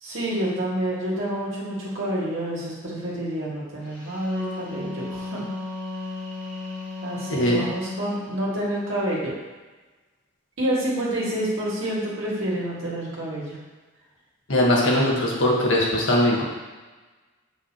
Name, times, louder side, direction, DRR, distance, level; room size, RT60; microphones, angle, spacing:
voice 1, 0.0-5.4 7.0-9.3 10.6-13.6, right 1 dB, 75° right, -6 dB, 1.9 m, -28 dB
Wind instrument woodwind instrument, 4.0-8.2, left 3 dB, 15° right, 2.0 m, -34 dB
voice 2, 7.3-7.6 14.5-16.4, left 1 dB, 70° left, -4 dB, 1.5 m, -20 dB
6.4 x 5.7 x 2.9 m, 1.3 s
head